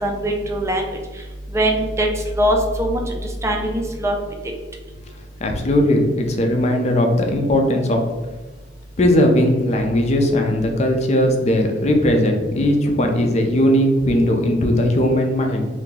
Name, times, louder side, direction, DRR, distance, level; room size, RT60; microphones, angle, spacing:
voice 1, 0.0-1.0 1.5-2.1 2.4-3.0 3.4-4.2, right 1 dB, 15° right, 1 dB, 0.5 m, -21 dB
voice 2, 5.4-8.0 9.0-15.6, left 1 dB, 40° left, 3 dB, 0.5 m, -18 dB
2.8 x 2.7 x 3.8 m, 1.3 s
head